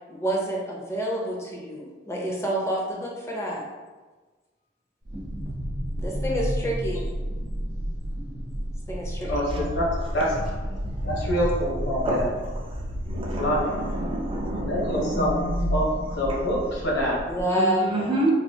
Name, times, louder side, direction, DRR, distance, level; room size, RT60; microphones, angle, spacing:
voice 1, 0.1-3.6 6.0-7.1 8.9-9.3 17.3-18.3, right 1 dB, 15° left, -3 dB, 0.6 m, -28 dB
sound 1, 5.0-17.4, equal, 60° right, 0.9 m, -31 dB
voice 2, 9.3-9.9 10.1-10.3 11.0-12.3 13.3-13.7 14.6-15.3 15.7-15.9 16.1-17.2, equal, 70° left, -4 dB, 1.1 m, -25 dB
voice 3, 12.0-12.6 13.1-15.3 16.2-16.4 17.5-18.3, right 1 dB, 30° right, -2 dB, 0.6 m, -29 dB
4.1 x 2.6 x 2.7 m, 1.3 s
head